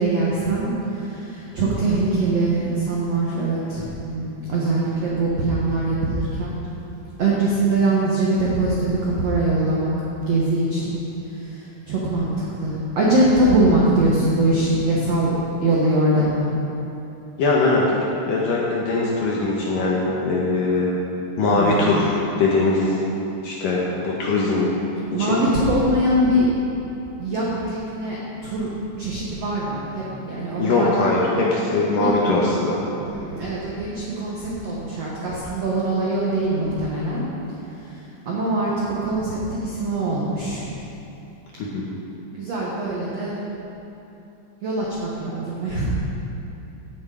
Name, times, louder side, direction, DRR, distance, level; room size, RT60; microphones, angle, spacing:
voice 1, 0.0-6.6 7.2-9.9 10.3-11.0 11.4-15.3 15.6-16.5 21.5-22.0 25.1-26.5 27.2-28.2 28.4-28.7 29.0-31.1 32.0-32.1 33.0-37.3 38.2-40.6 42.4-43.4 44.6-45.9, right 2 dB, 85° right, -6 dB, 1.4 m, -22 dB
voice 2, 17.4-17.9 18.2-20.9 21.4-23.0 23.4-24.7 25.1-25.4 30.6-32.8 41.6-41.9, left 3 dB, 65° left, -4 dB, 2.2 m, -21 dB
16.5 x 7.3 x 5.0 m, 2.9 s
omnidirectional pair, 5.2 m